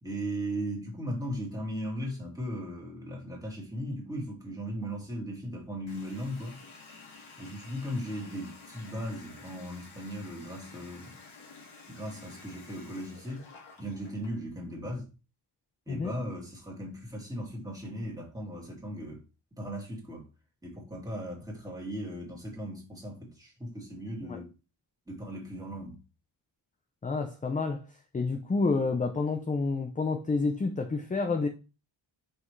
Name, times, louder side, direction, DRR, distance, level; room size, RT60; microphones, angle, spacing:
voice 1, 0.0-6.6 7.4-11.2 11.9-13.4 13.8-15.1 15.9-19.2 19.6-20.3 20.6-24.5 25.1-26.0, equal, 5° right, 2.1 m, -37 dB
Water tap faucet, 5.9-14.4, left 4 dB, 75° left, 1.9 m, -51 dB
voice 2, 27.0-27.8 28.1-31.5, left 3 dB, 20° left, 0.4 m, -29 dB
5.8 x 5.3 x 3.2 m
wide cardioid pair, 175°, 47 cm